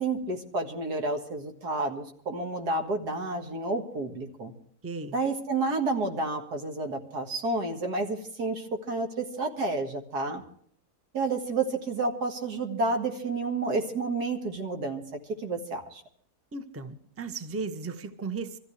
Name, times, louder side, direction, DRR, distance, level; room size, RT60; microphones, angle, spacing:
voice 1, 0.0-4.5 5.1-10.4 11.1-15.0 15.4-16.0, right 3 dB, 80° right, 2.4 m, -30 dB
voice 2, 4.8-5.2 16.5-18.6, right 4 dB, 10° right, 0.7 m, -36 dB
24.5 x 14.5 x 3.3 m
omnidirectional pair, 1.7 m